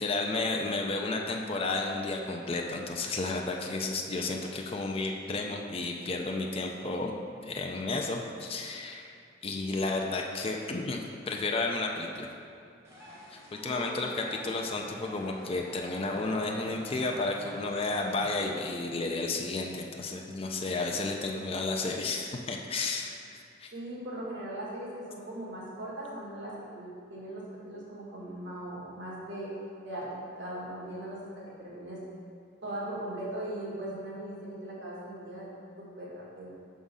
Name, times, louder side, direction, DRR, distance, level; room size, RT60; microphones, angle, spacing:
voice 1, 0.0-7.1 7.4-9.1 9.4-11.0 11.3-12.3 13.3-23.7, left 3 dB, 30° left, 1 dB, 0.4 m, -32 dB
sound 1, 12.8-18.6, left 1 dB, 15° right, 1.2 m, -48 dB
voice 2, 13.6-14.0 23.7-29.5 29.8-32.0 32.6-35.5 35.8-36.5, right 1 dB, 65° right, -7 dB, 1.5 m, -39 dB
6.0 x 3.7 x 5.4 m, 2.4 s
head